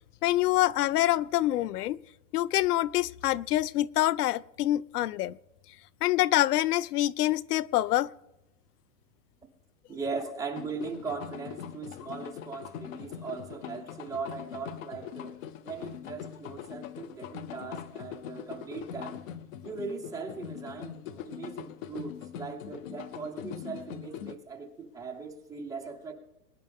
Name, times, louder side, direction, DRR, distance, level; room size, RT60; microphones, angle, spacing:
voice 1, 0.2-2.0 2.3-5.4 6.0-8.1, left 15 dB, 90° left, 0.6 m, -26 dB
voice 2, 9.9-15.4 15.6-19.2 19.6-26.1, right 4 dB, 5° right, 1.0 m, -39 dB
sound 1, 10.6-24.4, left 10 dB, 60° left, 0.9 m, -42 dB
22.0 x 10.5 x 3.5 m
supercardioid pair, 150°, 45 cm